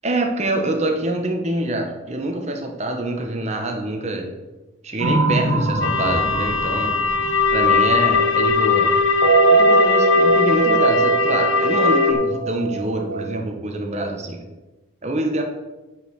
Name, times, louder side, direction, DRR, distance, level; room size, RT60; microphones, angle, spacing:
voice 1, 0.0-4.3 4.8-6.9 7.5-8.9 9.5-14.4 15.0-15.4, right 2 dB, 35° right, 3 dB, 1.3 m, -25 dB
sound 1, 5.0-8.7 9.0-13.4, right 4 dB, 90° right, 1.2 m, -22 dB
sound 2, 5.8-12.1, left 5 dB, 85° left, 1.3 m, -19 dB
9.8 x 5.5 x 6.6 m, 1.1 s
head